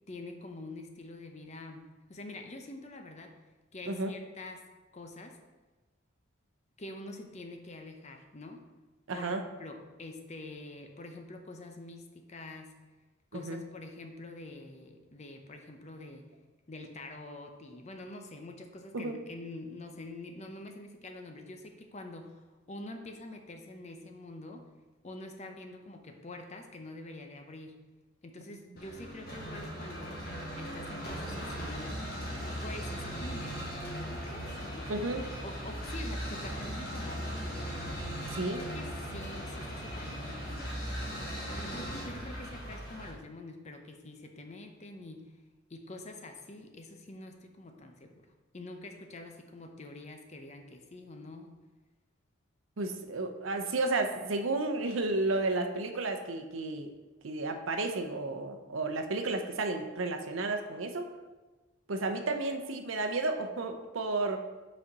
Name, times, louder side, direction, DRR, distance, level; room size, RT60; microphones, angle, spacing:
voice 1, 0.1-1.8 2.1-3.3 3.7-4.6 4.9-5.4 6.8-8.6 9.1-12.7 13.3-16.3 16.7-24.6 25.0-27.8 28.2-30.2 30.5-32.0 32.6-37.9 38.4-40.8 41.4-45.2 45.7-48.3 48.5-51.5, left 2 dB, 35° left, 4 dB, 0.6 m, -46 dB
voice 2, 9.1-9.4 13.3-13.6 18.9-19.2 34.9-35.2 38.3-38.6 52.8-56.9 57.2-61.1 61.9-64.4, right 2 dB, 75° right, 6 dB, 0.7 m, -32 dB
sound 1, 28.8-43.1, equal, 50° left, 1.4 m, -38 dB
5.4 x 4.2 x 5.3 m, 1.2 s
head